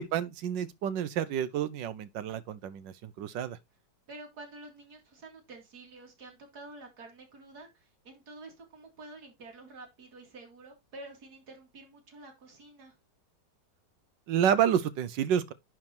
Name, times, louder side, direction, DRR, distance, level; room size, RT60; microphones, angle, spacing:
voice 1, 0.0-3.6 14.3-15.5, right 9 dB, 85° right, 1.4 m, -29 dB
voice 2, 4.1-12.9, right 2 dB, 60° right, 2.9 m, -49 dB
10.5 x 3.7 x 4.4 m
omnidirectional pair, 1.9 m